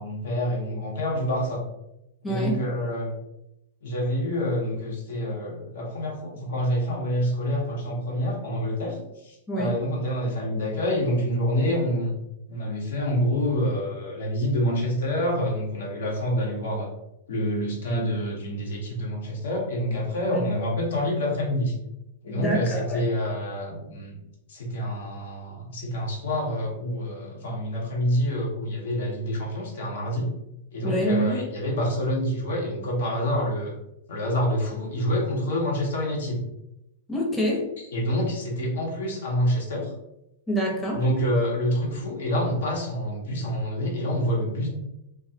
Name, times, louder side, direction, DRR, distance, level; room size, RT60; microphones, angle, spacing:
voice 1, 0.0-1.6 2.2-3.1 3.8-9.0 9.2-12.1 12.5-16.9 17.3-21.7 22.2-24.2 24.5-30.3 30.7-33.7 34.1-36.4 37.9-39.9 40.9-44.7, equal, 80° left, -1 dB, 0.7 m, -27 dB
voice 2, 2.2-2.6 9.5-9.7 20.3-20.4 22.3-23.0 30.8-31.4 37.1-37.6 40.5-41.0, right 1 dB, 10° left, -3 dB, 0.6 m, -26 dB
2.3 x 2.0 x 2.6 m, 0.87 s
hypercardioid pair, 125°, 0 cm